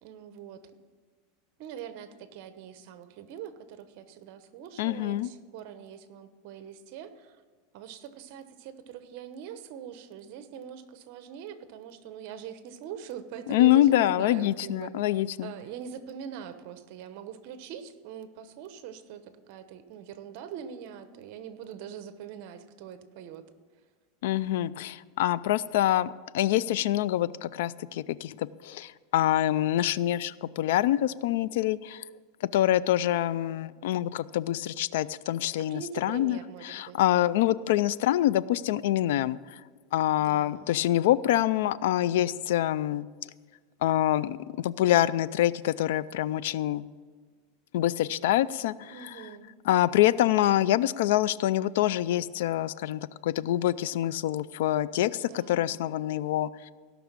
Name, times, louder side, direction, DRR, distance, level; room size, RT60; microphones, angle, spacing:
voice 1, 0.0-0.7 1.6-7.4 7.7-23.5 35.7-37.0 40.1-40.7 48.9-49.6 55.2-55.7, right 8 dB, 55° right, 11 dB, 1.0 m, -43 dB
voice 2, 4.8-5.3 13.5-15.5 24.2-32.0 32.4-36.4 36.6-39.6 39.9-43.1 43.8-46.9 47.7-49.2 49.7-56.7, left 13 dB, 75° left, 19 dB, 0.4 m, -26 dB
16.5 x 6.0 x 7.4 m, 1.5 s
supercardioid pair, 145°, 0 cm